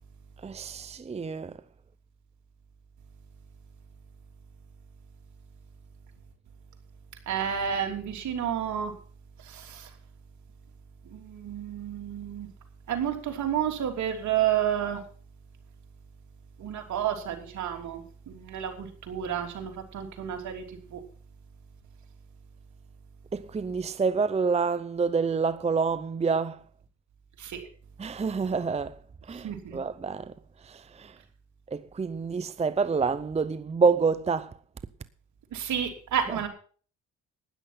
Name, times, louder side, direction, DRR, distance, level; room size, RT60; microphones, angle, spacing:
voice 1, 0.4-1.5 23.3-26.6 28.0-28.9 29.3-30.3 30.7-31.1 31.7-34.5, right 5 dB, 20° right, 0.7 m, -27 dB
voice 2, 7.3-8.9 9.4-9.9 11.0-12.5 12.9-15.0 16.6-21.0 27.4-27.7 29.4-29.8 35.5-36.5, right 9 dB, 70° right, 3.2 m, -31 dB
13.0 x 10.0 x 5.8 m
cardioid pair, 90°, 30 cm